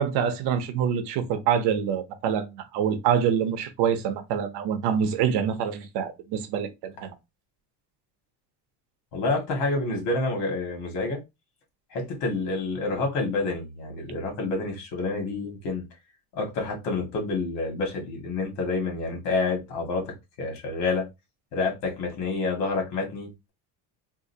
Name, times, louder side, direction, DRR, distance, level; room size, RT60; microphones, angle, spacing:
voice 1, 0.0-7.1, right 8 dB, 70° right, 0.8 m, -26 dB
voice 2, 9.1-11.2 11.9-15.8 16.3-20.1 20.4-21.0 21.5-23.5, left 3 dB, 80° left, 2.0 m, -28 dB
3.7 x 2.7 x 2.7 m
cardioid pair, 170°, 42 cm